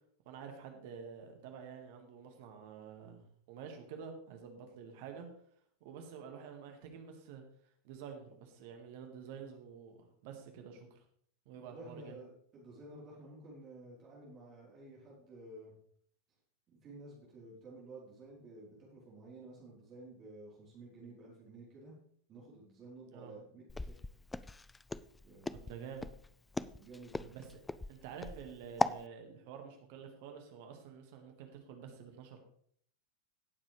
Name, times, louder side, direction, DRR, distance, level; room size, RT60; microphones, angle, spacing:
voice 1, 0.3-5.3 5.8-7.4 7.8-11.0 11.5-12.2 23.1-23.3 25.5-26.1 27.3-27.6 27.9-32.4, right 6 dB, 50° right, 4 dB, 1.8 m, -49 dB
voice 2, 11.5-15.7 16.7-21.9 22.3-24.0 25.2-25.6 26.8-27.3, right 2 dB, 30° right, -6 dB, 3.8 m, -52 dB
Walk footsteps, 23.7-29.0, left 3 dB, 10° left, 0.3 m, -37 dB
18.0 x 7.3 x 3.3 m, 0.63 s
figure-of-eight pair, 90°, 0 cm